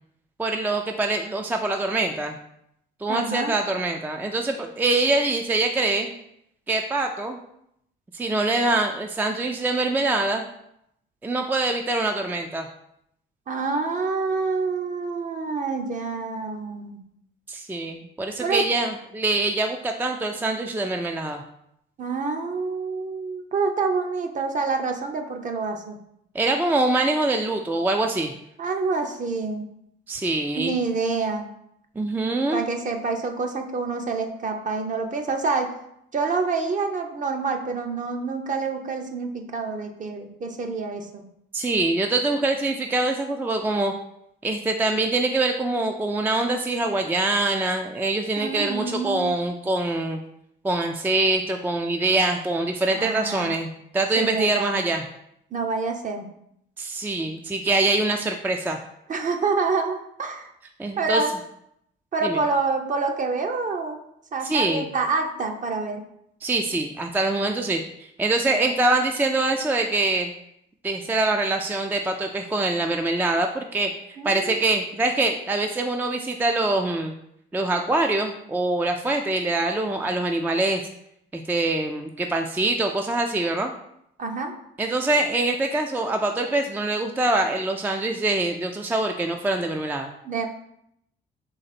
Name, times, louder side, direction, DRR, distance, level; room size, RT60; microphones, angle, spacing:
voice 1, 0.4-2.4 3.0-6.1 6.7-7.4 8.1-10.4 11.2-12.7 17.5-21.4 26.3-28.3 30.1-30.7 32.0-32.6 41.5-43.9 44.4-50.2 50.6-55.0 56.8-58.8 60.8-61.2 62.2-62.4 64.4-64.9 66.4-70.3 70.8-73.9 74.2-77.1 77.5-80.8 81.3-83.7 84.8-90.1, right 2 dB, 10° right, 4 dB, 0.3 m, -24 dB
voice 2, 3.1-3.5 13.5-17.0 18.4-18.6 22.0-26.0 28.6-29.6 30.6-31.5 32.5-35.7 36.1-41.3 48.4-49.2 52.9-53.5 54.2-54.7 55.5-56.3 59.1-60.5 61.0-61.3 62.1-64.0 64.3-66.0 68.5-68.6 74.2-74.6 84.2-84.5 90.2-90.5, right 4 dB, 40° right, 4 dB, 0.7 m, -27 dB
4.0 x 3.0 x 4.2 m, 0.76 s
cardioid pair, 90°, 20 cm